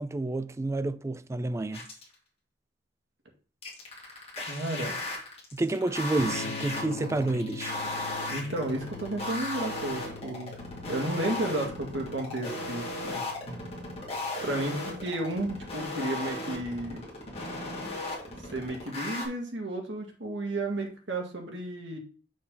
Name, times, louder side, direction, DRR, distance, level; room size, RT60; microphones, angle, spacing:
voice 1, 0.0-1.9 4.4-4.5 5.5-7.8 13.5-13.6, right 2 dB, 15° right, 0.3 m, -30 dB
sound 1, 1.7-2.1 3.6-19.3, left 1 dB, 35° left, 2.3 m, -36 dB
voice 2, 4.5-5.0 8.3-10.5 10.9-13.2 14.4-17.0 18.4-22.0, right 1 dB, 75° right, 1.9 m, -33 dB
Electric guitar / Strum, 6.2-15.9, left 5 dB, 60° left, 0.8 m, -44 dB
6.3 x 5.6 x 3.8 m
head